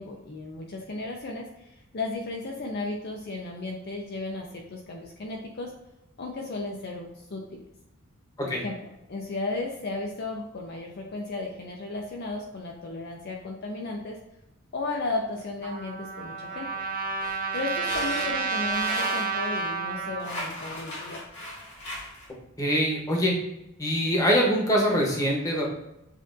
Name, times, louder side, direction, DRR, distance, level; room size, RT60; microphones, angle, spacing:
voice 1, 0.0-5.7 6.2-7.6 8.4-14.2 14.7-16.7 17.5-21.2, left 2 dB, 45° left, 1 dB, 0.5 m, -34 dB
Trumpet, 15.6-20.3, right 4 dB, 40° right, 0.5 m, -30 dB
sound 1, 17.2-19.7 20.2-22.3, left 1 dB, 75° left, 1.7 m, -38 dB
voice 2, 22.6-23.3 23.8-25.6, equal, 15° left, -2 dB, 0.9 m, -23 dB
7.4 x 2.6 x 2.6 m, 0.87 s
head